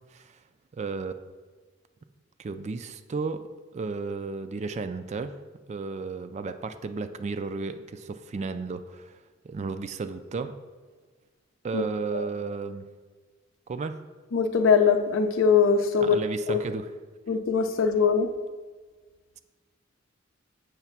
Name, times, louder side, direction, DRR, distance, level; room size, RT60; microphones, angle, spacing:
voice 1, 0.8-1.1 2.4-3.4 3.7-5.4 5.7-9.2 9.4-10.5 11.6-12.9 13.7-14.0 16.0-16.9, right 4 dB, 35° right, 10 dB, 0.3 m, -33 dB
voice 2, 14.3-16.2 16.5-16.6 17.3-18.3, left 6 dB, 75° left, 7 dB, 0.6 m, -22 dB
7.0 x 3.3 x 5.9 m, 1.4 s
head